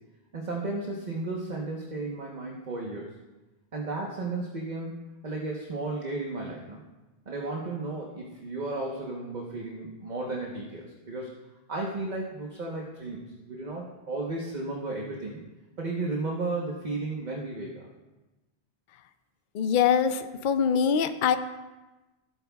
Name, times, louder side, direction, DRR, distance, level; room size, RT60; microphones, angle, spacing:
voice 1, 0.3-3.1 3.7-4.9 5.2-6.8 7.3-11.4 11.7-15.4 15.8-17.9, right 2 dB, 45° right, -2 dB, 1.2 m, -34 dB
voice 2, 19.5-21.4, left 7 dB, 60° left, 10 dB, 0.7 m, -23 dB
16.0 x 8.8 x 2.3 m, 1.1 s
omnidirectional pair, 1.0 m